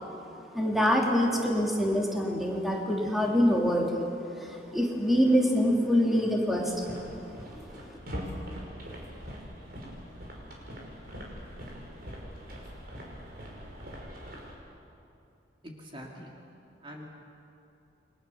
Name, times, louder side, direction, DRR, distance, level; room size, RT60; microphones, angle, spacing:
voice 1, 0.5-4.1 4.4-7.0, equal, ahead, -2 dB, 3.2 m, -25 dB
sound 1, 6.6-14.5, equal, 55° right, 5.6 m, -42 dB
voice 2, 15.6-16.4 16.8-17.1, equal, 30° right, -1 dB, 2.8 m, -44 dB
29.0 x 23.5 x 7.2 m, 2.7 s
head